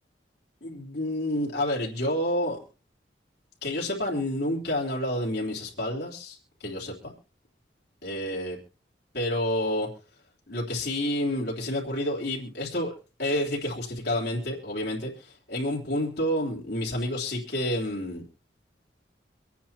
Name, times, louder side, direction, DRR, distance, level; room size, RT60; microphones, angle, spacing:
voice 1, 0.6-2.6 3.6-7.1 8.0-8.6 9.1-9.9 10.5-12.9 13.2-18.2, left 1 dB, 65° left, -3 dB, 3.6 m, -29 dB
26.0 x 9.3 x 3.0 m, 0.36 s
head